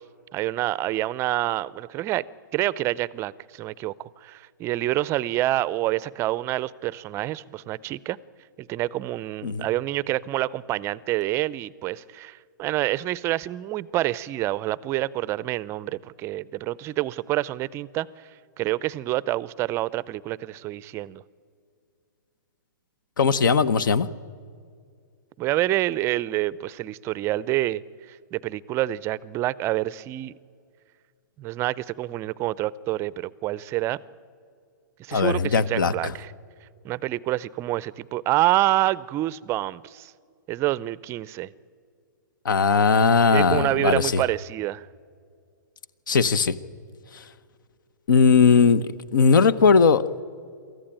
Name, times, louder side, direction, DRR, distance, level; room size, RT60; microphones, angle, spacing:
voice 1, 0.3-2.2 2.5-8.2 8.6-18.1 18.6-21.2 25.4-27.8 28.1-30.3 31.4-34.0 35.0-36.3 36.8-40.1 40.5-41.5 43.3-44.9, right 15 dB, 25° right, 20 dB, 0.5 m, -27 dB
voice 2, 23.2-24.1 35.1-36.1 42.4-44.2 46.1-46.6 47.1-47.2 48.1-48.8 49.1-50.0, left 5 dB, 75° left, 17 dB, 1.0 m, -19 dB
23.5 x 14.5 x 9.1 m, 2.2 s
hypercardioid pair, 130°, 11 cm